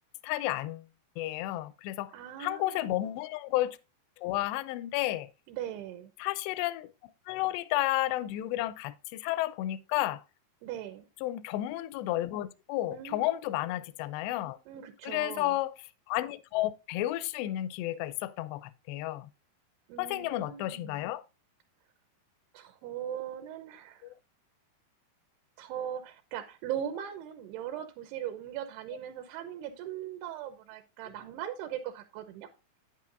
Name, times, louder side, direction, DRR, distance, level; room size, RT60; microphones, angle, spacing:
voice 1, 0.2-0.9 1.2-2.1 2.4-3.8 4.2-5.3 6.2-6.9 7.3-10.2 11.2-14.6 15.0-15.8 16.1-19.3 20.0-21.2 24.0-24.2, left 15 dB, 80° left, 2.6 m, -32 dB
voice 2, 2.1-3.0 5.5-6.1 10.6-11.1 12.9-13.4 14.7-15.6 19.9-21.0 22.5-24.0 25.6-32.5, right 10 dB, 80° right, 2.8 m, -39 dB
9.6 x 8.4 x 2.5 m
omnidirectional pair, 4.9 m